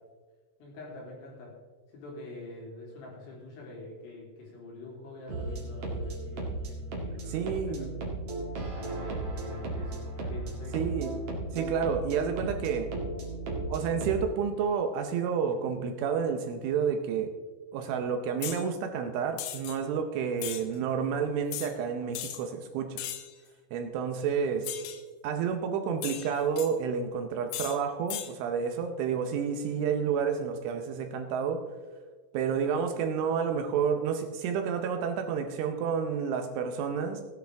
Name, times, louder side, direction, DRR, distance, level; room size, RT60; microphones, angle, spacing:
voice 1, 0.6-1.5 1.9-7.9 8.8-10.9, left 2 dB, 60° left, -3 dB, 5.0 m, -45 dB
sound 1, 5.3-14.2, right 2 dB, 50° right, 1.8 m, -35 dB
voice 2, 7.3-7.9 10.7-11.2 11.5-12.9 13.7-17.3 17.7-23.0 23.7-24.7 25.2-31.6 32.3-37.2, right 6 dB, 80° right, 6 dB, 3.1 m, -30 dB
sound 2, 18.4-18.6 19.4-19.8 20.4-20.6 21.5-21.7 22.1-22.4 23.0-23.3 24.6-25.0 26.0-26.7 27.5-27.8 28.1-28.3, left 11 dB, 85° left, 3.7 m, -37 dB
16.5 x 10.5 x 3.4 m, 1.4 s
omnidirectional pair, 5.9 m